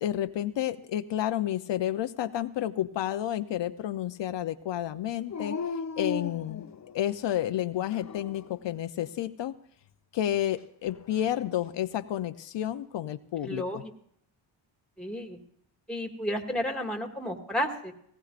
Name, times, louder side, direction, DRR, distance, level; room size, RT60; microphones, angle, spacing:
voice 1, 0.0-5.6 6.0-6.6 6.9-9.5 10.1-13.8, left 12 dB, 75° left, 10 dB, 0.6 m, -30 dB
Dog, 5.3-7.2 7.8-8.6 10.9-11.8, left 5 dB, 40° left, 0.7 m, -37 dB
voice 2, 13.4-13.9 15.0-15.4 15.9-17.9, equal, ahead, 3 dB, 2.0 m, -32 dB
18.5 x 18.0 x 2.5 m, 0.68 s
cardioid pair, 95°, 44 cm